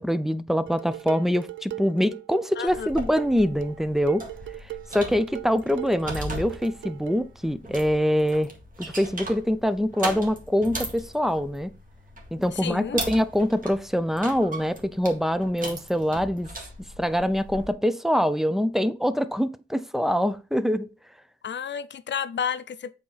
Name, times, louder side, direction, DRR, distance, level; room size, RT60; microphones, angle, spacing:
voice 1, 0.0-4.3 4.9-8.5 8.8-11.7 12.3-16.5 17.0-20.9, equal, ahead, 0.5 m, -24 dB
Dishes pots and pans, 0.7-7.3, right 17 dB, 65° right, 0.4 m, -39 dB
voice 2, 2.6-2.9 12.5-13.0 21.4-22.9, left 8 dB, 60° left, 0.5 m, -31 dB
sound 1, 2.7-17.7, right 1 dB, 40° right, 2.0 m, -38 dB
7.5 x 4.2 x 4.0 m
cardioid pair, 75°, 21 cm